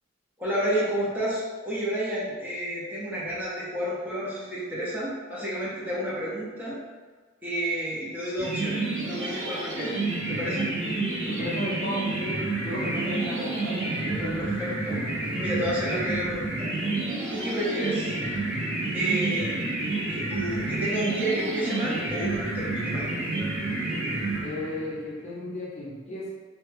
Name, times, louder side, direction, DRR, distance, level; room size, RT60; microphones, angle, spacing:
voice 1, 0.4-6.8 7.4-10.0 10.3-10.8 14.4-15.0 15.4-16.7 17.3-18.1 18.9-19.6 20.1-23.1, right 1 dB, 10° right, -8 dB, 0.7 m, -30 dB
sound 1, 8.4-25.0, right 2 dB, 75° right, 1.5 m, -29 dB
voice 2, 11.3-14.5 14.9-15.0 24.4-26.3, left 1 dB, 35° left, -6 dB, 0.6 m, -35 dB
3.1 x 2.3 x 3.3 m, 1.4 s
head